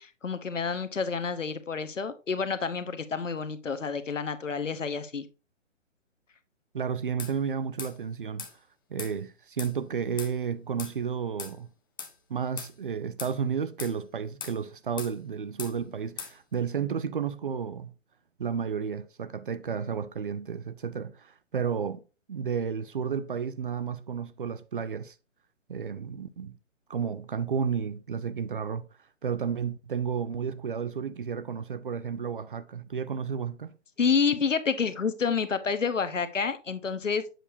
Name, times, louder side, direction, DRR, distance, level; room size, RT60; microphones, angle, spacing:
voice 1, 0.0-5.3 34.0-37.2, left 5 dB, 80° left, 0.9 m, -29 dB
voice 2, 6.7-8.5 8.9-11.7 12.3-17.9 18.4-22.0 22.3-25.1 25.7-26.6 26.9-28.9 29.2-33.7, right 7 dB, 45° right, 0.5 m, -32 dB
sound 1, 7.2-7.3 7.8-7.9 8.4-8.5 9.0-9.1 9.6-9.7 10.2-10.3 10.8-10.9 11.4-11.5 12.0-12.1 12.6-12.7 13.2-13.4 13.8-14.0 14.4-14.6 15.0-15.1 15.6-15.7 16.2-16.3, left 7 dB, 20° left, 0.6 m, -39 dB
7.5 x 6.8 x 2.6 m
figure-of-eight pair, 135°, 37 cm